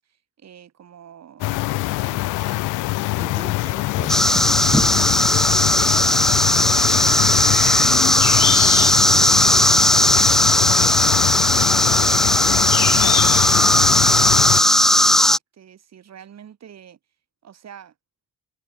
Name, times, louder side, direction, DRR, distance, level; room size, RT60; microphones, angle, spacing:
voice 1, 0.0-3.2 11.8-17.0 17.4-17.9, right 9 dB, 60° right, 7.4 m, -45 dB
sound 1, 1.4-14.6, left 21 dB, 90° left, 0.5 m, -23 dB
voice 2, 3.2-9.7 11.6-12.8, right 2 dB, 15° right, 2.9 m, -41 dB
sound 2, 4.0-4.3 5.4-8.1, left 4 dB, 30° left, 5.8 m, -35 dB
sound 3, 4.1-15.4, equal, ahead, 0.3 m, -17 dB
cardioid pair, 90°, 30 cm